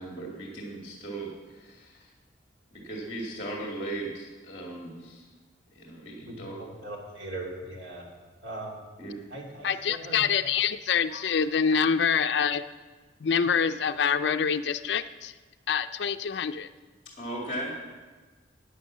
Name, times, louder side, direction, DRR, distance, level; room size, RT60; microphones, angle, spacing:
voice 1, 0.0-2.1 2.7-5.3 5.7-6.6 9.0-9.1 11.1-11.2 11.7-11.8 17.2-17.8, right 1 dB, 30° left, -2 dB, 2.3 m, -37 dB
voice 2, 6.2-8.1 8.4-8.8 9.3-10.2, right 2 dB, 80° right, -1 dB, 3.0 m, -40 dB
voice 3, 9.6-12.6 13.2-15.4 15.7-16.7, left 6 dB, 65° left, 10 dB, 0.5 m, -26 dB
11.5 x 9.4 x 7.3 m, 1.3 s
head